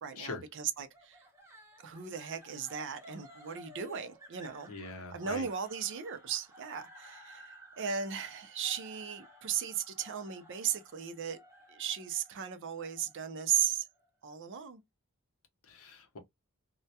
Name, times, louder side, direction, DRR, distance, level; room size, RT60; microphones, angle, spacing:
voice 1, 0.0-1.2 1.8-4.7 5.1-11.4 11.7-13.9 14.2-14.8, right 8 dB, 55° right, 0.4 m, -36 dB
sound 1, 0.9-14.1, equal, 10° right, 0.7 m, -56 dB
voice 2, 4.7-5.5 15.7-16.2, left 3 dB, 65° left, 0.7 m, -42 dB
2.2 x 2.1 x 2.7 m
head